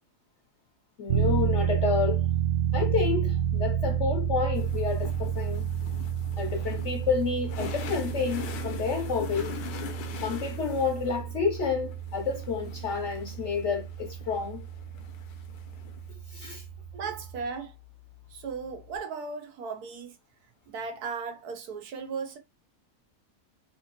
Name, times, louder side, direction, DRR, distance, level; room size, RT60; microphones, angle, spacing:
voice 1, 1.0-2.3 2.7-5.7 6.4-9.5 10.2-14.6 16.3-16.6, left 5 dB, 60° left, 0.8 m, -29 dB
sound 1, 1.1-17.4, right 9 dB, 65° right, 0.9 m, -31 dB
sound 2, 4.5-16.1, left 7 dB, 85° left, 1.3 m, -43 dB
voice 2, 16.9-17.8 18.3-20.1 20.7-22.4, right 5 dB, 85° right, 1.4 m, -36 dB
4.6 x 2.9 x 2.9 m
omnidirectional pair, 1.6 m